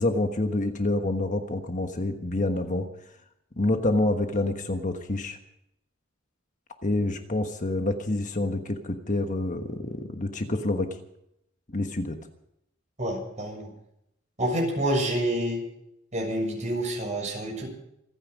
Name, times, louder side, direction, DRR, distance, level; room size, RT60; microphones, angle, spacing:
voice 1, 0.0-2.9 3.6-5.4 6.8-10.9 11.7-12.2, left 2 dB, 40° left, 6 dB, 1.3 m, -27 dB
voice 2, 13.0-13.7 14.4-15.6 16.1-17.7, right 1 dB, 35° right, 1 dB, 7.1 m, -28 dB
27.0 x 9.9 x 5.3 m, 0.79 s
head